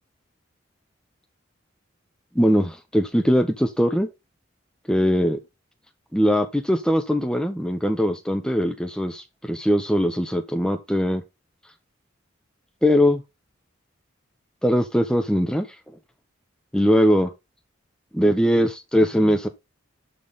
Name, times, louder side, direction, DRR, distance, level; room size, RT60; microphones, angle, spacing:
voice 1, 2.3-4.1 4.9-5.4 6.1-11.2 12.8-13.2 14.6-15.7 16.7-17.3 18.1-19.5, equal, 5° left, 1.1 m, -21 dB
10.5 x 4.1 x 3.8 m
head